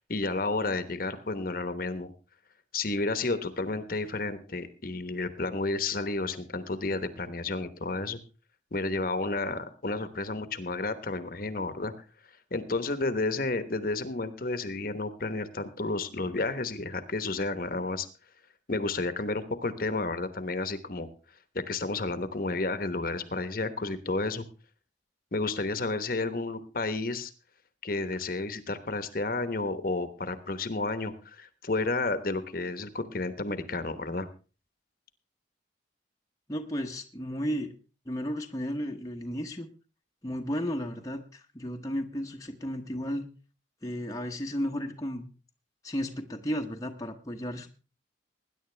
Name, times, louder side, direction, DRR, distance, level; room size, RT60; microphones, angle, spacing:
voice 1, 0.1-2.1 2.7-8.2 8.7-11.9 12.5-18.1 18.7-21.1 21.5-24.4 25.3-27.3 27.8-34.3, left 3 dB, 50° left, 11 dB, 1.1 m, -31 dB
voice 2, 36.5-37.7 38.1-39.7 40.2-43.3 43.8-45.3 45.8-47.7, equal, 20° left, 2 dB, 0.9 m, -33 dB
20.5 x 10.0 x 3.3 m, 0.33 s
head